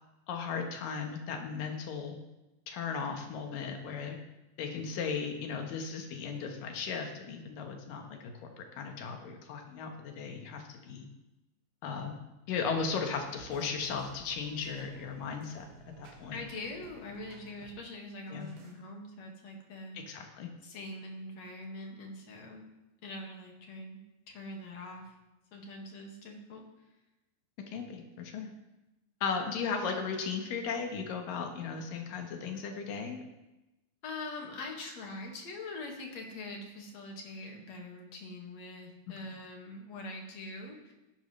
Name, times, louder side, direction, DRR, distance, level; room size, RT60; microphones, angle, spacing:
voice 1, 0.3-2.2 2.7-4.2 4.6-8.5 8.8-11.1 11.8-12.2 12.5-15.7 16.0-16.4 18.3-18.5 19.9-20.5 27.7-28.5 29.2-33.2, left 5 dB, 80° left, 4 dB, 3.0 m, -36 dB
sound 1, 12.7-17.8 18.3-18.8, right 5 dB, 85° right, 3.4 m, -55 dB
voice 2, 16.3-20.0 20.6-22.6 23.0-24.0 24.3-25.2 25.5-26.6 34.0-40.9, left 2 dB, 55° left, 1 dB, 2.9 m, -43 dB
17.0 x 11.0 x 3.3 m, 1.0 s
omnidirectional pair, 3.8 m